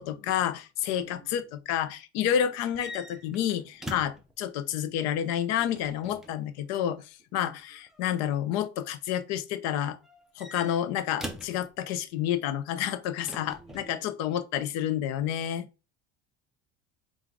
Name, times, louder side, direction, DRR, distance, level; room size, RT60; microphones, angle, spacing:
voice 1, 0.0-10.0 10.4-15.7, left 10 dB, 65° left, 0.6 m, -29 dB
voice 2, 0.9-1.5 2.3-2.4 2.8-2.9 6.7-6.9 7.3-7.5 13.3-14.3, right 5 dB, 25° right, 1.5 m, -54 dB
sound 1, 2.6-4.3 5.6-6.3 7.8-8.2 10.0-11.6 13.3-13.9, equal, ahead, 0.4 m, -42 dB
3.7 x 2.4 x 4.6 m
cardioid pair, 150°, 29 cm